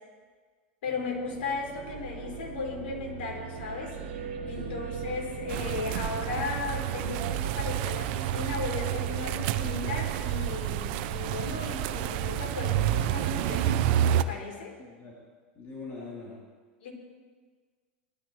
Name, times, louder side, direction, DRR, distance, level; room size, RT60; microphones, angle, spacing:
voice 1, 0.8-4.0 4.5-13.8 14.1-14.7 16.8-16.9, left 4 dB, 75° left, 0 dB, 4.0 m, -36 dB
sound 1, 0.8-11.0, right 6 dB, 80° right, 2.2 m, -41 dB
sound 2, 5.5-14.2, right 11 dB, 60° right, 0.7 m, -29 dB
voice 2, 14.8-15.2 15.6-16.3, left 4 dB, 35° left, -7 dB, 3.7 m, -42 dB
19.5 x 12.5 x 3.3 m, 1.5 s
hypercardioid pair, 110°, 6 cm